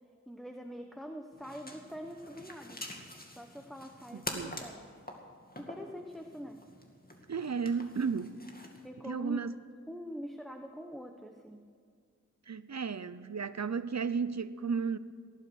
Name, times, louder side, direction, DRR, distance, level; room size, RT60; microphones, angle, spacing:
voice 1, 0.3-2.8 3.3-4.8 5.6-6.6 8.8-9.4 9.9-11.7, equal, ahead, 1.0 m, -44 dB
sound 1, 1.3-8.9, left 1 dB, 30° left, 2.3 m, -46 dB
voice 2, 4.1-4.6 7.3-8.4 9.0-9.5 12.5-15.0, right 5 dB, 60° right, 0.7 m, -34 dB
18.0 x 12.0 x 6.4 m
wide cardioid pair, 50°, 30 cm